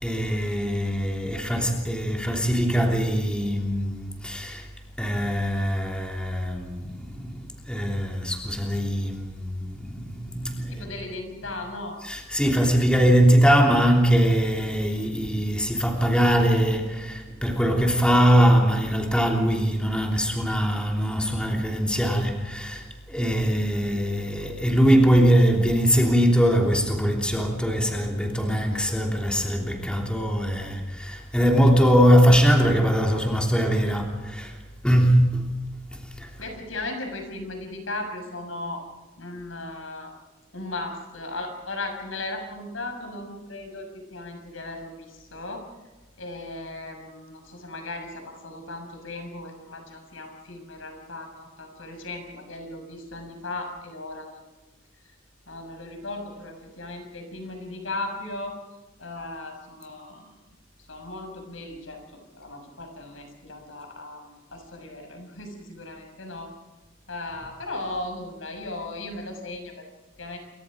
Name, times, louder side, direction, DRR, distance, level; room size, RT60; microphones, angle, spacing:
voice 1, 0.0-4.6 5.0-10.9 12.0-34.6 34.8-35.5 35.9-36.3, equal, 5° left, 3.2 m, -22 dB
voice 2, 10.7-12.0 36.4-38.8 39.2-40.1 40.5-45.6 46.2-54.3 55.5-58.6 59.0-60.3 60.9-66.5 67.1-69.8 70.2-70.4, left 2 dB, 75° left, 6.5 m, -36 dB
28.5 x 24.5 x 5.2 m
head